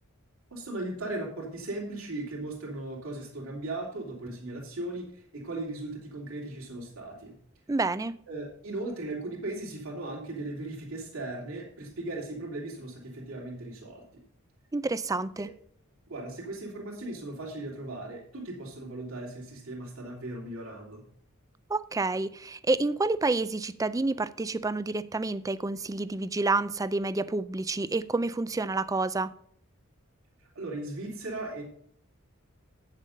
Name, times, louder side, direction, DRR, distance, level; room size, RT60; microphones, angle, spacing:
voice 1, 0.5-7.3 8.3-14.0 15.4-15.5 16.1-21.0 30.4-31.6, right 2 dB, 70° right, 3.0 m, -37 dB
voice 2, 7.7-8.1 14.7-15.5 21.7-29.3, right 3 dB, 15° right, 0.4 m, -29 dB
9.2 x 7.4 x 5.1 m
head